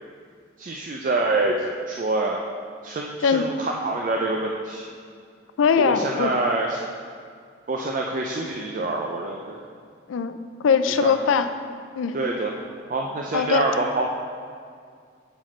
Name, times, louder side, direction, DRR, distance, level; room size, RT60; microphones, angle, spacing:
voice 1, 0.6-2.4 2.8-4.9 5.8-6.8 7.7-9.6 11.0-11.1 12.1-12.5 12.9-14.1, right 2 dB, 45° right, 0 dB, 0.4 m, -26 dB
voice 2, 5.6-6.3 10.1-10.4 10.6-11.5 12.0-12.1 13.3-13.6, left 6 dB, 90° left, 10 dB, 0.4 m, -21 dB
7.5 x 4.9 x 4.2 m, 2.2 s
head